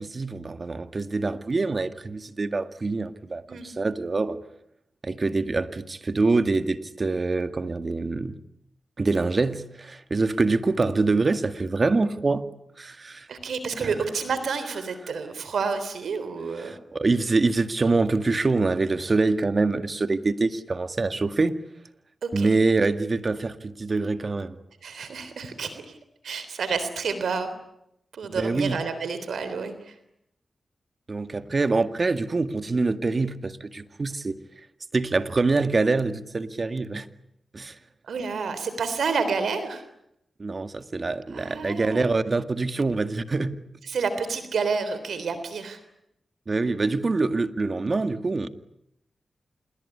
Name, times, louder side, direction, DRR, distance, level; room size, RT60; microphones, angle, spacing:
voice 1, 0.0-4.4 5.0-8.4 9.0-12.5 12.8-13.3 13.8-13.9 16.6-21.5 22.3-24.6 28.4-28.8 31.1-34.4 34.9-37.1 37.5-37.8 40.4-43.6 46.5-48.5, right 3 dB, 50° right, 2.0 m, -25 dB
voice 2, 13.3-16.8 22.2-22.5 24.8-26.0 26.2-27.5 28.1-30.0 38.0-39.8 41.3-42.1 43.9-45.8, right 5 dB, 80° right, 3.6 m, -29 dB
27.0 x 21.0 x 9.9 m
cardioid pair, 45°, 0 cm